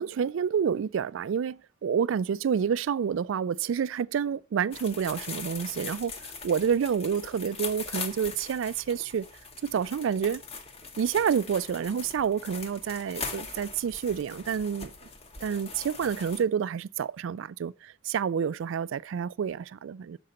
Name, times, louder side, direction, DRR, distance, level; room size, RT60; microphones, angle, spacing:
voice 1, 0.0-6.1 6.4-9.3 9.6-10.4 11.0-14.9 15.4-20.2, right 7 dB, 65° right, 0.3 m, -28 dB
sound 1, 4.7-16.4, left 4 dB, 30° left, 0.8 m, -41 dB
6.8 x 5.0 x 4.0 m
head